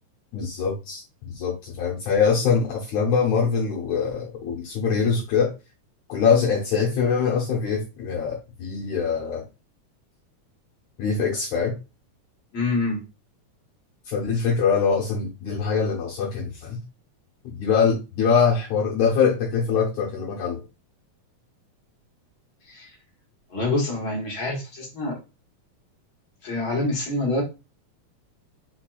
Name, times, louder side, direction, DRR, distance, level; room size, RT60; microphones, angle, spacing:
voice 1, 0.3-5.5 6.1-9.4 11.0-11.7 14.1-16.8 17.5-20.6, left 6 dB, 75° left, -2 dB, 2.1 m, -23 dB
voice 2, 12.5-13.0 22.7-22.9 23.5-25.2 26.4-27.4, left 2 dB, 50° left, -2 dB, 1.9 m, -26 dB
4.6 x 4.2 x 2.3 m, 0.28 s
omnidirectional pair, 3.6 m